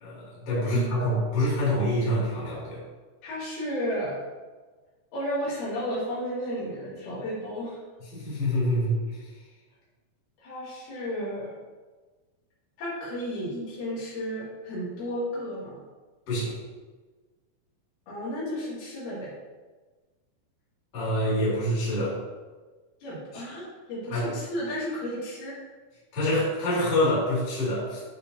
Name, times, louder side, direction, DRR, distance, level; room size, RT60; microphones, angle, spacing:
voice 1, 0.0-2.8 8.1-9.2 16.3-16.6 20.9-22.2 24.1-24.3 26.1-28.0, left 1 dB, 45° left, -8 dB, 3.1 m, -26 dB
voice 2, 0.6-1.1 3.2-4.2 5.1-7.8 10.4-11.6 12.8-15.8 18.1-19.3 23.0-25.6, equal, 80° left, -8 dB, 4.2 m, -33 dB
12.0 x 4.1 x 2.7 m, 1.3 s
omnidirectional pair, 4.3 m